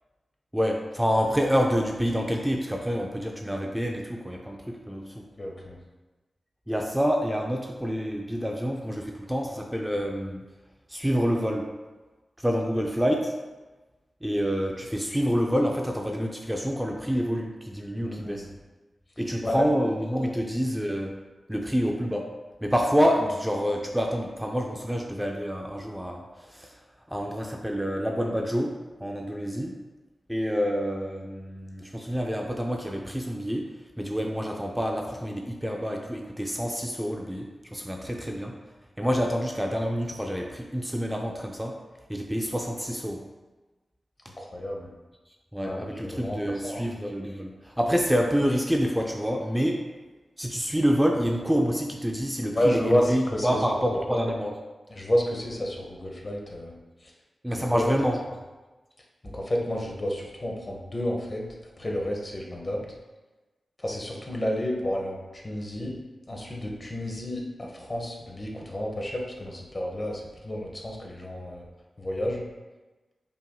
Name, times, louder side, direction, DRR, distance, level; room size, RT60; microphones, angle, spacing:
voice 1, 0.5-5.3 6.7-10.5 10.9-11.7 12.4-13.3 14.2-18.5 19.2-21.2 21.5-26.8 27.1-29.8 30.3-33.7 34.0-38.6 39.0-41.8 42.1-43.3 45.5-49.9 50.4-54.6 57.4-58.2, equal, 5° right, 1 dB, 0.4 m, -27 dB
voice 2, 5.4-5.8 18.0-18.5 19.4-19.7 20.2-20.3 44.4-44.9 45.6-46.8 52.5-53.6 54.9-56.8 57.0-57.1 57.6-57.8 59.2-61.5 61.8-62.8 63.8-66.0 66.3-71.6 72.0-72.5, equal, 40° left, -1 dB, 1.0 m, -30 dB
5.4 x 3.5 x 2.3 m, 1.2 s
cardioid pair, 50°, 0 cm